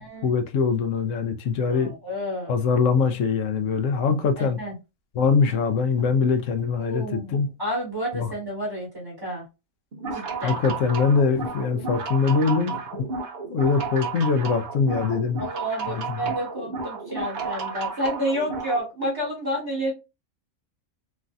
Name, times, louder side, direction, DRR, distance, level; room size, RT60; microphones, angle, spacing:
voice 1, 0.0-1.9 2.5-4.6 5.1-7.5 8.2-8.3 10.4-13.1 13.5-15.4 15.9-16.2, left 5 dB, 70° left, 0.9 m, -23 dB
voice 2, 1.7-2.5 4.4-4.7 6.8-9.4 10.1-10.6 15.4-19.9, equal, 20° right, 1.0 m, -30 dB
sound 1, 9.9-18.8, right 4 dB, 50° right, 0.8 m, -32 dB
3.1 x 2.5 x 2.2 m
omnidirectional pair, 1.4 m